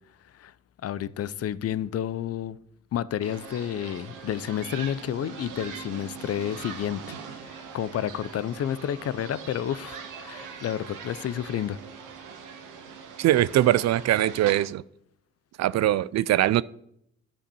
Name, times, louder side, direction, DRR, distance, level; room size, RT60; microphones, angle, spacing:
voice 1, 0.8-2.6 2.9-7.2 7.5-11.8, left 10 dB, 55° left, 0.6 m, -30 dB
sound 1, 3.2-14.6, right 6 dB, 85° right, 1.5 m, -42 dB
voice 2, 13.2-14.8 15.6-16.6, right 13 dB, 60° right, 0.4 m, -22 dB
11.5 x 5.3 x 6.9 m
cardioid pair, 90°, 30 cm